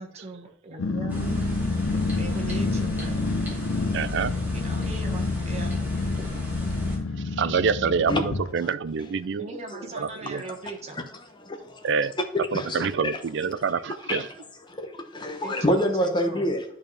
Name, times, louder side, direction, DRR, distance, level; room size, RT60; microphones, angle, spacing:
voice 1, 0.0-1.6 1.9-3.2 4.6-5.7 6.2-6.5 9.4-11.0 15.4-16.5, right 2 dB, 35° right, 1.4 m, -39 dB
Growling, 0.8-8.5, left 3 dB, 80° left, 0.6 m, -28 dB
sound 1, 1.1-7.0, equal, 10° right, 2.3 m, -35 dB
voice 2, 3.9-4.3 7.4-9.5 10.0-10.4 11.8-12.1 12.5-14.3, right 6 dB, 60° right, 0.4 m, -26 dB
voice 3, 11.4-11.9 12.3-12.9 13.1-13.2 14.1-14.2 14.7-16.6, left 1 dB, 25° left, 0.9 m, -27 dB
10.5 x 4.3 x 3.3 m
head